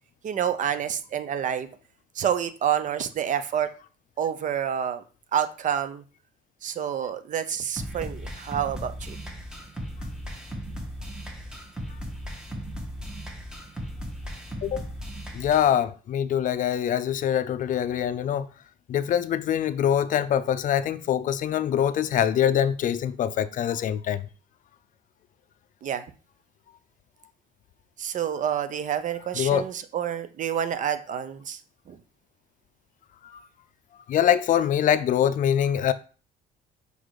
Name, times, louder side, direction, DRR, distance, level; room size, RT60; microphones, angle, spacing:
voice 1, 0.2-1.7 2.1-3.7 4.2-5.0 5.3-6.0 6.6-9.2 25.8-26.0 28.0-31.6 31.9-32.0, right 9 dB, 50° right, 0.7 m, -28 dB
sound 1, 7.8-15.8, equal, 5° right, 1.5 m, -37 dB
voice 2, 15.3-18.5 18.9-24.3 29.3-29.6 33.2-33.4 34.1-35.9, left 9 dB, 50° left, 0.5 m, -24 dB
5.4 x 4.0 x 4.8 m
cardioid pair, 110°, 17 cm